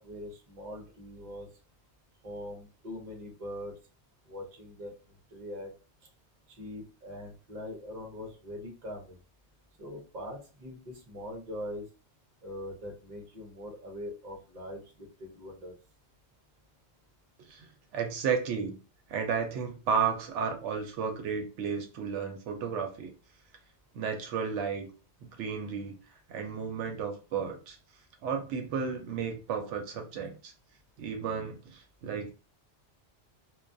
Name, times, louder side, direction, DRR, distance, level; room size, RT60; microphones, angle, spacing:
voice 1, 0.0-1.5 2.2-3.7 4.3-4.9 5.3-5.7 6.5-9.2 9.8-11.9 12.4-15.7, left 1 dB, 45° right, 0 dB, 0.7 m, -42 dB
voice 2, 17.4-18.8 19.1-23.1 23.9-24.9 25.2-26.0 26.3-27.8 28.2-30.5 31.0-32.3, right 6 dB, 85° right, 4 dB, 0.9 m, -33 dB
2.3 x 2.3 x 2.5 m, 0.36 s
omnidirectional pair, 1.2 m